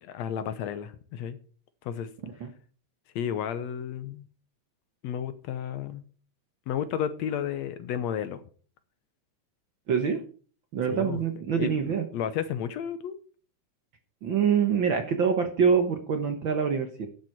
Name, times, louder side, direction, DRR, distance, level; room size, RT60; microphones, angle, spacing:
voice 1, 0.0-1.4 1.8-2.1 3.2-4.3 5.0-6.0 6.7-8.4 10.9-11.2 11.6-13.2, left 9 dB, 70° left, 12 dB, 2.0 m, -32 dB
voice 2, 9.9-10.2 10.7-12.0 14.2-17.1, right 6 dB, 55° right, 6 dB, 1.5 m, -25 dB
10.5 x 7.5 x 5.8 m, 0.41 s
omnidirectional pair, 3.3 m